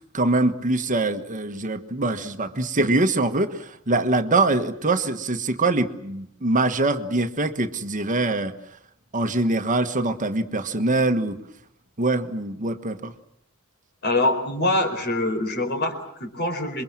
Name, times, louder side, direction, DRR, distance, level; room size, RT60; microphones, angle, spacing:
voice 1, 0.1-8.5 9.1-11.4 12.0-13.1, right 2 dB, 35° right, 8 dB, 1.3 m, -23 dB
voice 2, 14.0-16.8, left 2 dB, 50° left, 7 dB, 4.6 m, -24 dB
28.0 x 23.0 x 7.4 m, 0.72 s
head